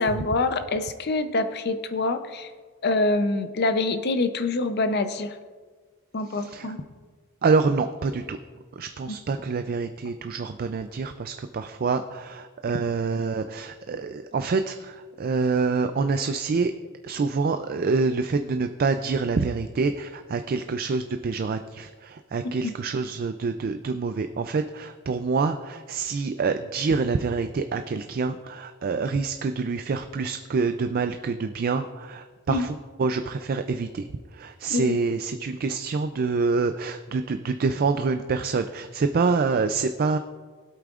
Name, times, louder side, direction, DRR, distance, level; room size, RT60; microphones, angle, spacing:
voice 1, 0.0-2.5 2.8-5.4 6.1-6.8 22.6-22.7 32.5-32.7 34.7-35.0, left 2 dB, 50° left, 9 dB, 0.6 m, -25 dB
voice 2, 6.3-6.7 7.4-8.4 8.7-16.7 17.0-40.2, right 4 dB, 45° right, 8 dB, 0.4 m, -26 dB
19.0 x 8.3 x 2.4 m, 1.5 s
head